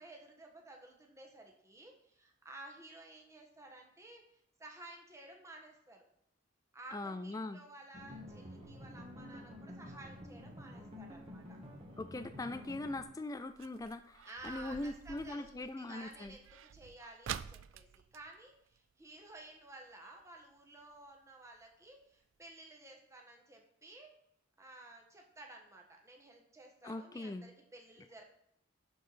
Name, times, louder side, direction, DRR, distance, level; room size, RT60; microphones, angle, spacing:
voice 1, 0.0-6.1 6.7-11.6 14.2-24.1 24.6-28.2, right 2 dB, 15° right, 1 dB, 1.5 m, -54 dB
voice 2, 6.9-7.6 12.0-16.4 26.8-27.5, left 2 dB, 15° left, 10 dB, 0.4 m, -41 dB
sound 1, 7.9-13.0, left 1 dB, 30° right, 1.5 m, -50 dB
sound 2, 10.1-19.4 19.7-19.8 20.1-20.4 20.9-21.0 21.6-21.7 21.9-22.0 22.4-22.5, right 9 dB, 70° right, 0.4 m, -50 dB
11.5 x 4.7 x 4.2 m, 0.73 s
head